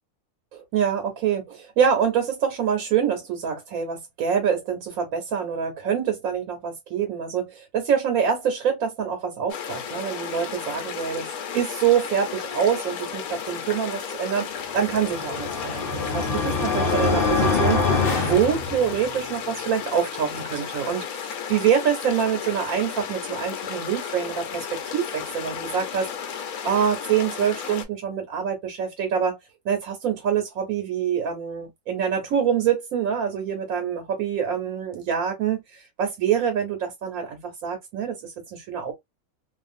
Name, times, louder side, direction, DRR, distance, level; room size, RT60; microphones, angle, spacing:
voice 1, 0.5-11.3 11.5-14.5 14.7-26.1 26.6-29.4 29.6-38.9, right 8 dB, 75° right, 1.2 m, -25 dB
sound 1, 9.5-27.8, left 7 dB, 90° left, 1.1 m, -34 dB
sound 2, 14.9-19.2, left 4 dB, 50° left, 0.8 m, -24 dB
2.5 x 2.4 x 2.5 m
omnidirectional pair, 1.5 m